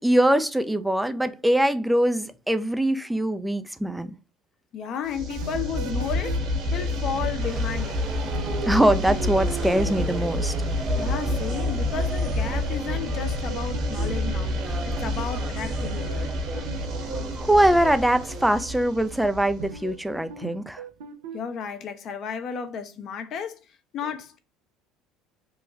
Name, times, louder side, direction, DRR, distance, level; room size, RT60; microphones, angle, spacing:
voice 1, 0.0-4.1 8.6-10.5 17.4-20.8, right 1 dB, 5° right, 0.4 m, -22 dB
voice 2, 4.7-8.1 11.0-16.3 21.3-24.4, left 7 dB, 55° left, 0.6 m, -33 dB
sound 1, 4.9-6.6 8.3-8.8 11.2-11.4 11.7-11.8 13.5-14.3 15.8-16.3 16.6-16.8 17.1-17.2 19.6-20.0 20.3-21.4, right 5 dB, 85° right, 0.5 m, -38 dB
sound 2, 5.1-19.9, left 1 dB, 65° right, 0.9 m, -28 dB
sound 3, 7.4-18.5, right 2 dB, 45° right, 1.2 m, -37 dB
3.1 x 2.2 x 3.6 m
hypercardioid pair, 75°, 0 cm